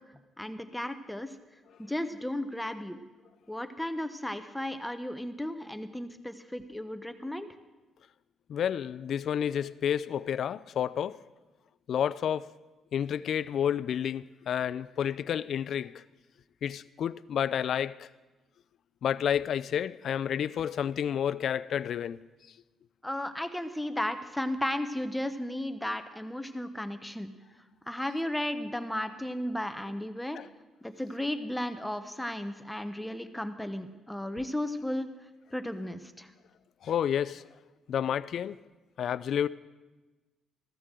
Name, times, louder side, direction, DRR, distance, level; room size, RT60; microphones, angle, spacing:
voice 1, 0.4-1.4 1.8-3.0 3.5-7.5 23.0-27.3 27.9-30.4 30.8-35.1 35.5-36.3, left 1 dB, 5° left, 0.8 m, -34 dB
voice 2, 8.5-11.2 11.9-12.5 12.9-16.0 16.6-18.1 19.0-22.3 30.3-30.5 36.8-37.4 37.9-38.6 39.0-39.5, left 9 dB, 65° left, 0.3 m, -30 dB
14.5 x 14.0 x 3.7 m
cardioid pair, 90°, 0 cm